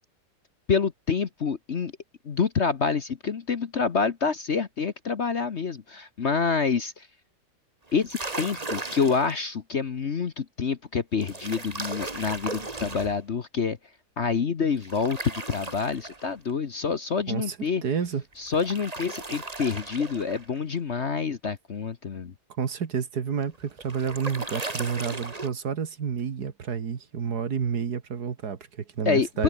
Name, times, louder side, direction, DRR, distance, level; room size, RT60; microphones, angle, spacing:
voice 1, 0.7-1.9 2.2-7.1 7.9-13.8 14.2-17.8 18.4-22.3 29.0-29.4, left 5 dB, 45° left, 1.2 m, -27 dB
sound 1, 7.9-9.4 11.2-13.2 14.8-16.5 18.3-20.5 23.4-25.5, right 2 dB, 20° right, 2.1 m, -36 dB
voice 2, 17.8-18.2 22.6-29.4, right 7 dB, 60° right, 2.1 m, -30 dB
omnidirectional pair, 1.9 m